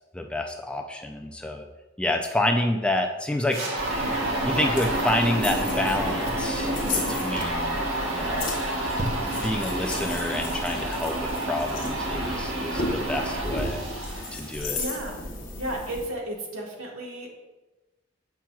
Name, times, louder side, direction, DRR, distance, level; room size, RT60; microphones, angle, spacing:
voice 1, 0.1-1.7 2.0-4.0 4.4-7.8 8.1-8.5 9.4-13.8 14.3-14.8, left 1 dB, 5° left, 3 dB, 0.3 m, -28 dB
sound 1, 3.5-14.8, right 1 dB, 70° right, 1.3 m, -29 dB
sound 2, 3.8-16.1, left 2 dB, 40° left, 1.1 m, -34 dB
Chewing mastication, 4.6-5.5 5.8-6.6 7.1-7.6 8.1-9.6, right 1 dB, 40° right, 0.8 m, -37 dB
voice 2, 14.4-15.2 15.6-17.3, right 1 dB, 85° right, -1 dB, 1.3 m, -34 dB
7.4 x 5.8 x 2.3 m, 1.1 s
head